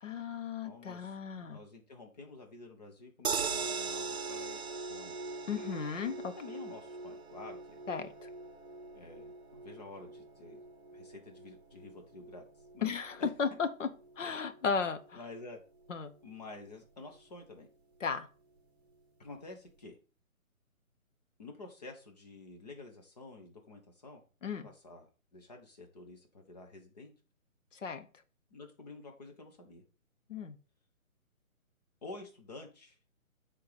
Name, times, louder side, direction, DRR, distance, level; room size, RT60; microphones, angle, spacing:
voice 1, 0.0-1.6 5.5-6.3 7.9-8.3 12.8-13.9 14.2-15.2 15.9-16.1 18.0-18.3 24.4-24.7 27.8-28.1 30.3-30.6, left 6 dB, 60° left, 10 dB, 0.9 m, -35 dB
voice 2, 0.6-5.2 6.4-7.8 8.9-10.6 10.9-12.4 12.7-12.9 13.2-13.3 15.1-15.6 16.2-17.7 19.2-20.0 21.4-24.2 24.6-27.1 28.5-29.8 32.0-33.0, left 3 dB, 30° left, 3 dB, 1.1 m, -50 dB
sound 1, 3.2-15.5 15.9-16.0 16.2-16.3, right 4 dB, 50° right, 0.9 m, -41 dB
6.6 x 3.8 x 5.1 m, 0.36 s
hypercardioid pair, 165°, 42 cm